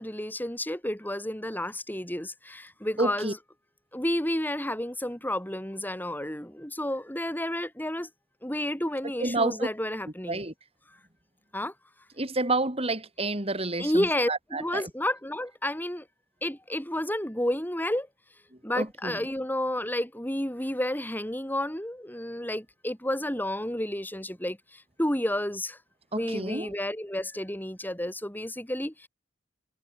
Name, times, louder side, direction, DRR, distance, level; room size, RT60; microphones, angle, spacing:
voice 1, 0.0-3.4 3.9-8.1 8.4-10.4 11.5-11.7 13.8-16.0 16.4-18.1 18.6-24.6 25.0-25.8 26.1-29.1, left 1 dB, 10° left, 5.6 m, -31 dB
voice 2, 3.0-3.3 9.2-9.7 10.3-10.5 12.2-14.9 18.7-19.2 26.1-26.7, right 2 dB, 30° right, 4.4 m, -29 dB
head